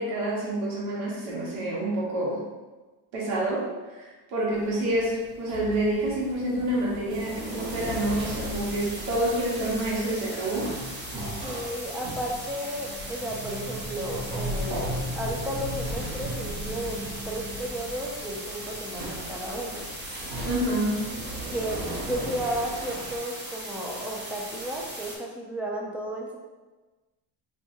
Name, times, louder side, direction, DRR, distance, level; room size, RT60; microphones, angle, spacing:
voice 1, 0.0-2.4 3.1-3.6 4.0-10.7 20.4-21.0, right 1 dB, 85° right, -5 dB, 1.4 m, -28 dB
sound 1, 4.5-23.2, equal, 55° right, 1.1 m, -37 dB
sound 2, 7.1-25.2, right 1 dB, 20° right, 0.9 m, -39 dB
voice 2, 11.4-19.9 21.4-26.4, right 1 dB, 5° right, -2 dB, 0.4 m, -33 dB
4.5 x 2.7 x 2.7 m, 1.2 s
cardioid pair, 120°, 46 cm